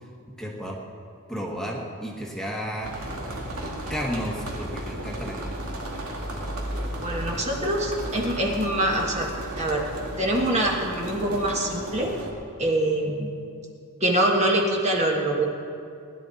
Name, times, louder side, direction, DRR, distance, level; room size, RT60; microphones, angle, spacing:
voice 1, 0.4-0.8 1.3-2.9 3.9-5.7, equal, ahead, -3 dB, 1.4 m, -32 dB
sound 1, 2.8-12.3, right 1 dB, 75° right, 2.3 m, -34 dB
voice 2, 7.0-9.3 9.6-9.9 10.2-12.1 12.6-13.3 14.0-15.5, right 1 dB, 30° right, -1 dB, 1.6 m, -24 dB
20.5 x 11.5 x 4.2 m, 2.4 s
head